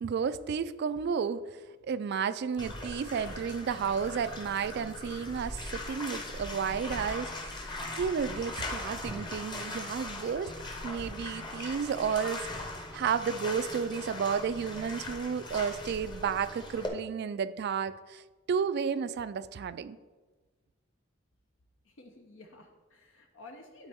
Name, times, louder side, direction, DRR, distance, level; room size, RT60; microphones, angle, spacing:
voice 1, 0.0-7.6 7.9-10.5 10.8-20.0, right 6 dB, 55° right, 13 dB, 0.3 m, -32 dB
Bathtub (filling or washing), 2.6-16.9, left 2 dB, 25° left, 0.9 m, -40 dB
voice 2, 21.8-23.9, left 2 dB, 75° left, 2 dB, 0.8 m, -52 dB
11.5 x 4.1 x 3.5 m, 1.3 s
head